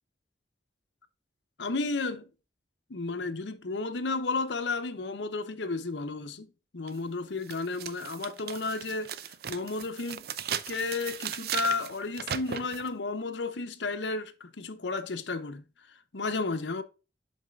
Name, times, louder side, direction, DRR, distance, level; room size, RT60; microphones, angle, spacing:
voice 1, 1.6-2.3 2.9-10.3 10.7-15.6 16.1-16.8, left 3 dB, 90° left, 0.8 m, -33 dB
sound 1, 6.9-7.0 7.5-12.9, right 9 dB, 60° right, 0.5 m, -37 dB
7.8 x 6.0 x 2.4 m
head